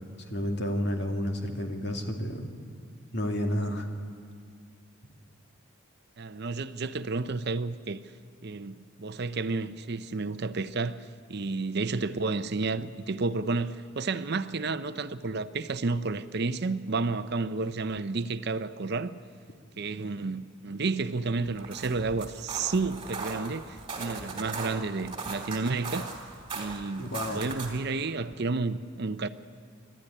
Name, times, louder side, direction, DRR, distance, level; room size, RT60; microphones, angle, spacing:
voice 1, 0.3-2.5 3.1-3.9 27.0-27.4, equal, 55° left, 2.5 m, -30 dB
voice 2, 6.2-8.0 8.4-19.2 19.8-26.1 26.6-29.3, right 3 dB, 55° right, 0.7 m, -31 dB
sound 1, 21.4-27.9, right 4 dB, 25° right, 3.4 m, -39 dB
27.5 x 12.0 x 10.0 m
head